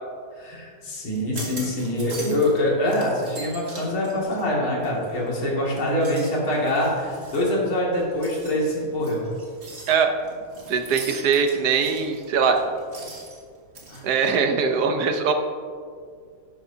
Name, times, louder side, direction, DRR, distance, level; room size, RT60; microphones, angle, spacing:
voice 1, 0.4-9.2 13.9-14.0, left 1 dB, 75° left, -4 dB, 3.2 m, -24 dB
sound 1, 1.1-2.6 2.9-5.3 5.7-14.0, right 2 dB, 30° right, 2.1 m, -41 dB
voice 2, 10.7-12.6 14.0-15.3, right 6 dB, 60° right, 6 dB, 1.2 m, -21 dB
12.0 x 10.5 x 2.8 m, 2.1 s
omnidirectional pair, 2.3 m